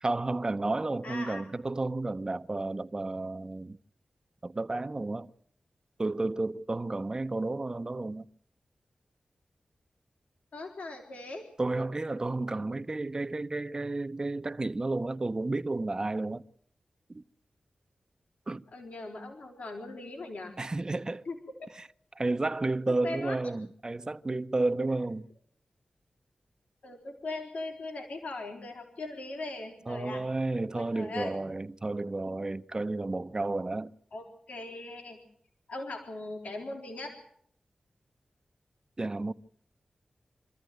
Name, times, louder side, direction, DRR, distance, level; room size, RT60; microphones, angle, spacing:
voice 1, 0.0-3.8 4.4-5.3 6.0-8.2 11.6-16.4 17.1-17.2 18.5-18.6 20.6-21.2 21.7-21.9 22.1-25.2 29.9-33.9 39.0-39.3, right 2 dB, 30° right, 0.8 m, -32 dB
voice 2, 1.0-1.5 10.5-11.5 18.7-20.5 21.3-21.4 21.6-21.7 23.0-23.4 26.8-30.2 30.7-31.3 34.1-35.2 35.7-37.2, left 2 dB, 85° left, 4.1 m, -39 dB
26.5 x 14.0 x 9.3 m
wide cardioid pair, 80°, 2 cm